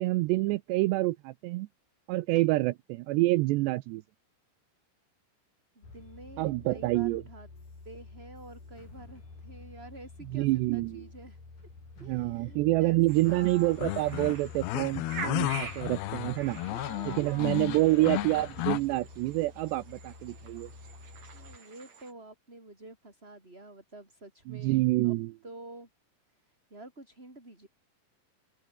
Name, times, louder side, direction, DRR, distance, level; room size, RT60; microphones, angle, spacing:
voice 1, 0.0-1.7 2.1-4.0 6.4-7.2 10.3-11.1 12.0-16.6 17.1-20.7 24.5-25.3, right 19 dB, 80° right, 2.6 m, -27 dB
voice 2, 5.7-7.5 7.8-11.4 12.0-13.0 13.3-13.9 16.5-18.3 21.3-25.2 25.4-25.9 26.5-27.7, right 2 dB, 10° right, 6.2 m, -48 dB
sound 1, 5.8-21.6, left 3 dB, 40° left, 9.5 m, -50 dB
sound 2, 13.1-22.1, right 5 dB, 40° right, 4.6 m, -46 dB
sound 3, 13.3-18.8, left 17 dB, 75° left, 2.6 m, -34 dB
omnidirectional pair, 5.5 m